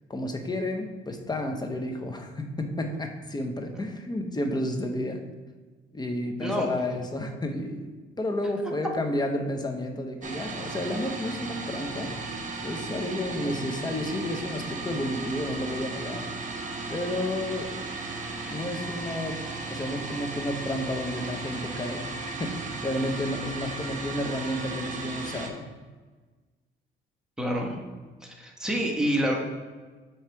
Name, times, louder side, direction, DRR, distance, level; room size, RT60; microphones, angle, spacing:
voice 1, 0.1-5.2 5.9-16.2 16.9-17.7 18.5-22.1 22.4-25.6, left 1 dB, 20° left, 4 dB, 0.9 m, -31 dB
sound 1, 10.2-25.5, right 3 dB, 40° right, 1.0 m, -35 dB
voice 2, 27.4-27.8 28.2-29.3, equal, 5° right, -1 dB, 1.3 m, -27 dB
7.3 x 3.2 x 4.7 m, 1.3 s
cardioid pair, 90°, 20 cm